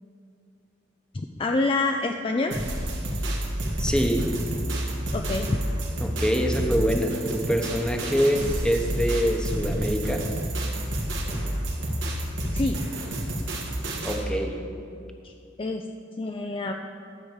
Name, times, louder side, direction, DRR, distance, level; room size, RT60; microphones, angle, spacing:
voice 1, 1.1-2.6 5.1-5.5 12.5-12.8 15.2-15.3 15.6-15.9 16.2-16.7, left 3 dB, 30° left, 4 dB, 0.4 m, -27 dB
sound 1, 2.5-14.2, right 1 dB, 75° right, 1.7 m, -29 dB
voice 2, 3.8-4.4 6.0-10.3 14.0-14.6, equal, 5° left, 3 dB, 0.9 m, -25 dB
12.5 x 5.0 x 7.3 m, 2.5 s
head